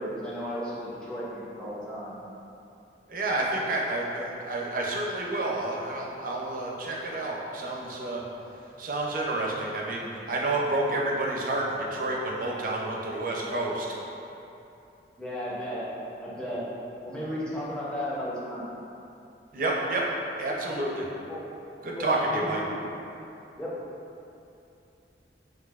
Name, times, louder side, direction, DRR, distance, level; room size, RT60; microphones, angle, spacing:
voice 1, 0.0-2.2 15.2-15.8 16.2-16.6 17.0-18.6 21.3-21.4 21.9-22.5 23.6-23.7, equal, 5° left, -9 dB, 0.6 m, -34 dB
voice 2, 3.1-8.2 8.8-13.9 19.5-20.1 20.4-21.1 21.8-22.6, right 2 dB, 50° right, -2 dB, 0.5 m, -29 dB
5.9 x 2.7 x 2.4 m, 2.8 s
head